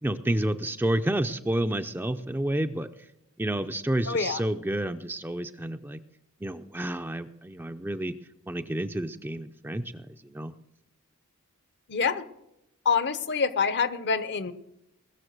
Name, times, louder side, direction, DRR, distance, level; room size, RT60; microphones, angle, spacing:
voice 1, 0.0-2.9 3.4-6.0 6.4-8.1 8.5-10.5, right 1 dB, 10° right, 8 dB, 0.5 m, -30 dB
voice 2, 4.1-4.4 11.9-12.2 12.8-14.5, left 5 dB, 55° left, 14 dB, 0.9 m, -26 dB
20.0 x 6.8 x 6.6 m, 0.86 s
head